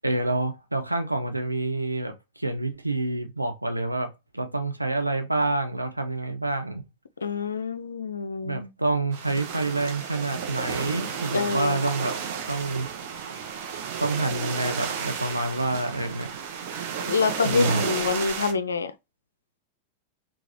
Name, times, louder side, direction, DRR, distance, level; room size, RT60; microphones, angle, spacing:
voice 1, 0.0-6.8 8.4-12.2 12.5-12.9 14.0-16.4 17.5-17.8, right 2 dB, 85° right, 0.4 m, -28 dB
voice 2, 7.2-8.7 11.3-11.8 17.0-18.9, left 4 dB, 70° left, 0.3 m, -26 dB
sound 1, 9.1-18.5, right 7 dB, 50° right, 0.7 m, -32 dB
3.8 x 2.3 x 2.8 m
figure-of-eight pair, 90°, 0 cm